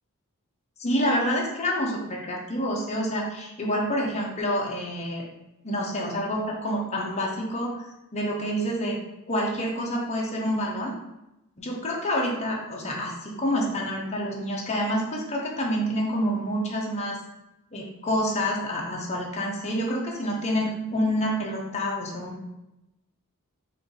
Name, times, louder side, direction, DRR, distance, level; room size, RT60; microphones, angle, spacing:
voice 1, 0.8-5.2 5.6-7.8 8.1-8.9 9.3-10.9 11.6-17.2 17.7-22.5, equal, 30° left, -2 dB, 0.9 m, -28 dB
4.3 x 2.6 x 4.0 m, 0.92 s
head